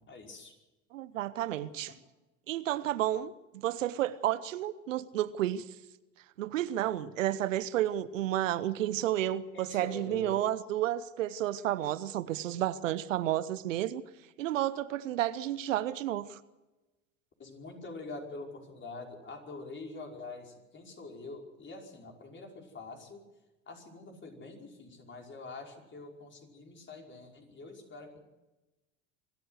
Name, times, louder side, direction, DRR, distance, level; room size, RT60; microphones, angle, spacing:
voice 1, 0.1-0.5 1.9-2.0 9.5-10.4 17.4-23.2 23.7-28.2, left 3 dB, 30° left, 2 dB, 5.3 m, -45 dB
voice 2, 0.9-1.9 2.5-5.7 6.4-14.0 14.4-16.4, right 13 dB, 75° right, 16 dB, 0.9 m, -31 dB
25.0 x 13.5 x 7.9 m, 1.1 s
hypercardioid pair, 70°, 38 cm